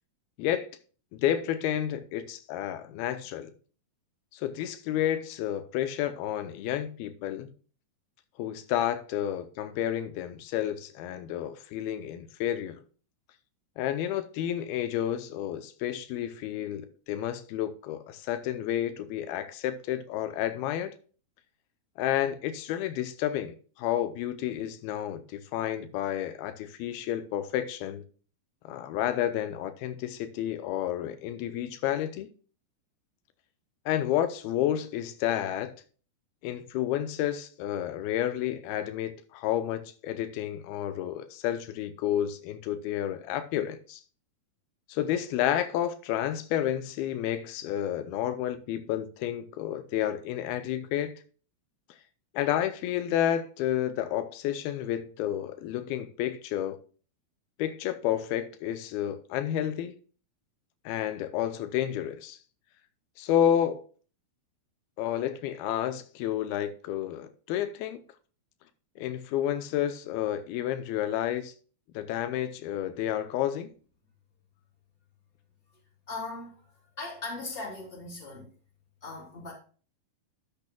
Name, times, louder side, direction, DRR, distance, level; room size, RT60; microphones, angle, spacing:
voice 1, 1.2-3.5 4.3-7.5 8.4-12.8 13.8-20.9 22.0-28.0 28.6-32.3 33.9-35.7 36.4-44.0 44.9-51.1 52.3-56.8 57.6-60.0 60.9-62.4 63.2-63.8 65.0-68.0 69.0-71.5 72.0-73.7, left 11 dB, 85° left, 2.6 m, -30 dB
voice 2, 76.1-76.5 77.0-78.5 79.0-79.5, left 3 dB, 15° left, 3.6 m, -38 dB
12.0 x 8.4 x 2.3 m
omnidirectional pair, 4.4 m